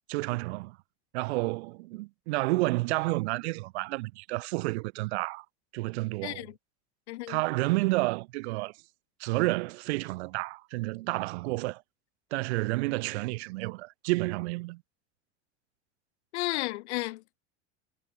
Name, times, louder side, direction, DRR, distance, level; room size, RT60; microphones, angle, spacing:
voice 1, 0.1-0.8 1.1-5.4 5.7-6.5 7.3-8.8 9.2-11.8 12.3-14.8, right 23 dB, 80° right, 6.4 m, -30 dB
voice 2, 6.2-6.5 7.1-7.4 16.3-17.4, left 19 dB, 85° left, 3.6 m, -33 dB
supercardioid pair, 120°, 33 cm